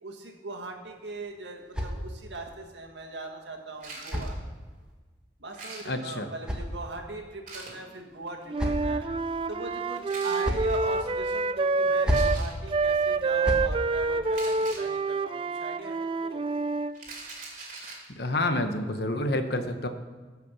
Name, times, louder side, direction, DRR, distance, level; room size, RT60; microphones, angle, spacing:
voice 1, 0.0-4.4 5.4-16.4, right 2 dB, 80° right, 3 dB, 1.7 m, -40 dB
sound 1, 0.8-2.5 3.5-4.9 5.9-7.3 8.1-9.1 10.1-10.8 11.8-12.4 13.2-13.7, equal, 5° right, 1.3 m, -33 dB
sound 2, 3.8-4.4 5.5-6.2 7.5-7.8 9.9-10.5 12.0-12.7 14.3-14.9 16.9-18.1, right 3 dB, 45° right, 2.8 m, -42 dB
voice 2, 5.8-6.3 18.2-19.9, left 1 dB, 60° left, 7 dB, 1.0 m, -28 dB
Wind instrument woodwind instrument, 8.5-12.4 12.7-16.9, right 3 dB, 30° right, 0.3 m, -27 dB
15.5 x 5.8 x 6.1 m, 1.4 s
head